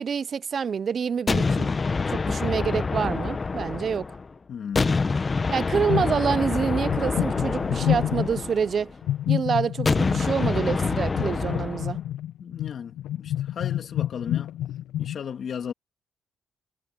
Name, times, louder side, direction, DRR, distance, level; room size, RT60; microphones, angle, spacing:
voice 1, 0.0-1.7 2.1-4.1 5.5-8.9 9.3-12.0, right 6 dB, 50° right, 0.5 m, -27 dB
sound 1, 1.3-4.3 4.7-9.0 9.8-12.0, left 4 dB, 30° left, 1.0 m, -26 dB
voice 2, 4.5-4.9 12.4-14.5 15.0-15.7, left 7 dB, 55° left, 2.2 m, -35 dB
sound 2, 5.9-6.5 6.8-8.5 9.0-15.2, left 12 dB, 90° left, 0.8 m, -29 dB
cardioid pair, 90°, 0 cm